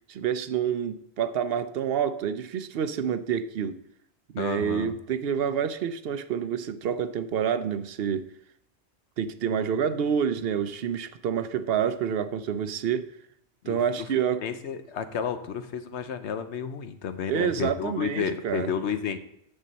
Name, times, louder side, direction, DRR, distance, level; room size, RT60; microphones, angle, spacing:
voice 1, 0.1-3.7 4.3-8.3 9.2-13.1 13.7-14.4 17.3-18.7, right 8 dB, 65° right, 12 dB, 0.8 m, -28 dB
voice 2, 4.4-4.9 13.6-14.1 14.4-19.2, left 7 dB, 85° left, 9 dB, 1.1 m, -31 dB
8.8 x 7.4 x 4.0 m, 0.74 s
omnidirectional pair, 1.1 m